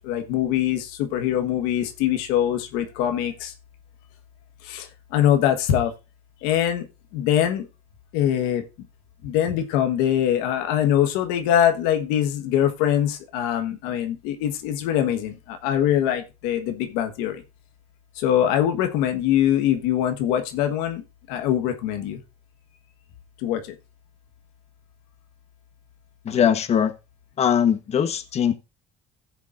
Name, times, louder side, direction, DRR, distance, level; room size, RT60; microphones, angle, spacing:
voice 1, 0.0-3.5 4.6-5.9 6.4-6.9 7.1-7.7 8.1-8.6 9.2-17.4 18.2-22.2 23.4-23.7, left 10 dB, 85° left, 1.5 m, -23 dB
voice 2, 26.2-26.9 27.4-28.5, left 8 dB, 40° left, 1.3 m, -21 dB
16.0 x 7.1 x 2.6 m
supercardioid pair, 100°, 16 cm